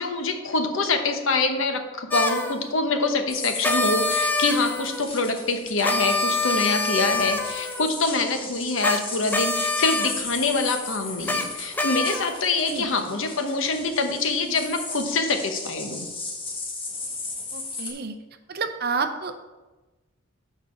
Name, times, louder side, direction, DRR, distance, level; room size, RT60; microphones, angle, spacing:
voice 1, 0.0-16.1, left 3 dB, 65° left, 6 dB, 0.9 m, -25 dB
sound 1, 2.1-2.6 3.6-5.0 5.8-7.9 8.8-9.0 9.3-10.1 11.3-11.4 11.7-12.4, left 2 dB, 10° left, 0.5 m, -25 dB
sound 2, 3.3-17.9, left 3 dB, 25° left, 1.4 m, -36 dB
voice 2, 17.5-18.2 18.5-19.4, right 5 dB, 50° right, 8 dB, 0.6 m, -29 dB
6.4 x 4.9 x 6.8 m, 1.1 s
head